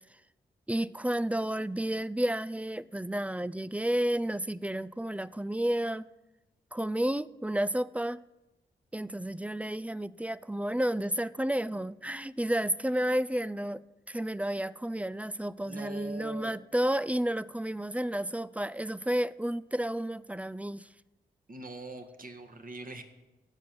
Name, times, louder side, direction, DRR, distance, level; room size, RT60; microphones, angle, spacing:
voice 1, 0.7-6.1 6.7-8.2 8.9-20.9, right 1 dB, 5° right, 0.4 m, -31 dB
voice 2, 15.6-16.6 21.5-23.0, right 2 dB, 50° right, 1.6 m, -43 dB
14.5 x 5.2 x 7.8 m
supercardioid pair, 40°, 19 cm